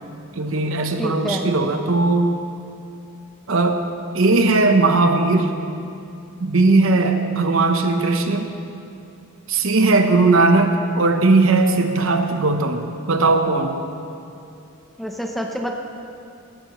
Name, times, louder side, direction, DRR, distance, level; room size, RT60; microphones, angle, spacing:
voice 1, 0.4-2.3 3.5-3.8 4.1-5.5 6.4-8.5 9.5-13.8, right 3 dB, 65° right, 6 dB, 0.9 m, -18 dB
voice 2, 1.0-1.5 15.0-15.7, equal, ahead, 2 dB, 0.7 m, -27 dB
17.0 x 13.5 x 3.1 m, 2.6 s
head